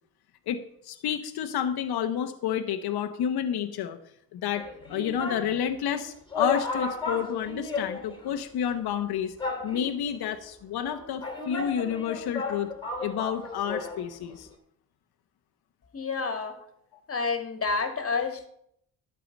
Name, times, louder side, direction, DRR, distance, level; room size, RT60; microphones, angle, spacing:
voice 1, 0.5-4.0 4.3-9.3 9.6-12.7 13.0-14.5, left 9 dB, 65° left, 7 dB, 1.0 m, -30 dB
sound 1, 4.6-5.5 6.0-6.1 6.3-8.4 8.6-8.7 9.4-10.1 10.9-14.1 14.3-14.4, left 3 dB, 10° left, 2.7 m, -33 dB
voice 2, 15.9-16.6 17.1-18.5, left 4 dB, 35° left, 7 dB, 2.0 m, -29 dB
11.0 x 4.7 x 8.2 m, 0.71 s
cardioid pair, 75°, 40 cm